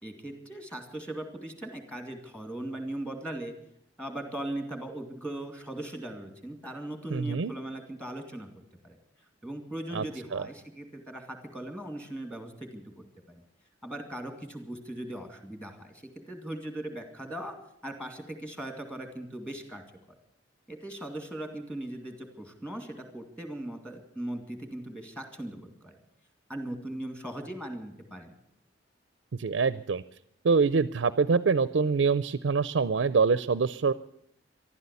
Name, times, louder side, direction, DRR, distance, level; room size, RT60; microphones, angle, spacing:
voice 1, 0.0-3.5 4.0-8.5 8.8-9.0 9.4-12.9 13.3-13.4 13.8-17.5 17.8-19.8 20.7-26.0 26.5-28.3, right 1 dB, 5° left, 5 dB, 2.3 m, -39 dB
voice 2, 7.1-7.5 9.9-10.0 10.3-10.4 29.4-30.0 30.4-33.9, right 5 dB, 85° right, 16 dB, 0.5 m, -25 dB
14.0 x 12.0 x 8.3 m, 0.72 s
head